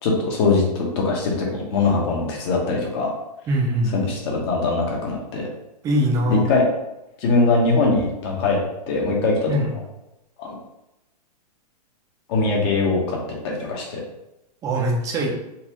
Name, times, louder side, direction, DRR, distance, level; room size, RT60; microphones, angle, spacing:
voice 1, 0.0-3.1 3.9-5.5 6.3-6.7 7.2-8.6 8.9-9.5 10.4-10.6 12.3-13.2 13.4-14.0, left 3 dB, 40° left, -1 dB, 1.0 m, -21 dB
voice 2, 3.5-4.0 5.8-6.5 9.5-9.7 14.6-15.3, right 1 dB, 15° right, 0 dB, 0.5 m, -22 dB
4.0 x 2.4 x 2.9 m, 0.91 s
hypercardioid pair, 150°, 21 cm